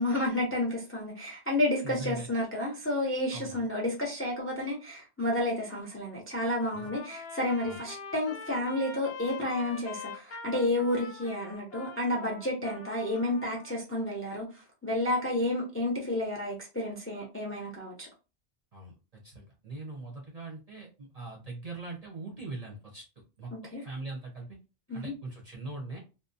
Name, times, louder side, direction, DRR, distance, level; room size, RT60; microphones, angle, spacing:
voice 1, 0.0-18.1 23.5-23.8 24.9-25.1, left 1 dB, 20° left, -1 dB, 0.3 m, -31 dB
voice 2, 1.8-2.3 3.3-3.6 6.7-6.9 7.7-7.8 18.7-23.0 23.4-23.5 23.8-24.6 24.9-26.0, right 3 dB, 40° right, -2 dB, 0.6 m, -41 dB
Trumpet, 6.6-13.7, left 5 dB, 60° left, 0.7 m, -44 dB
2.5 x 2.0 x 2.6 m, 0.31 s
omnidirectional pair, 1.3 m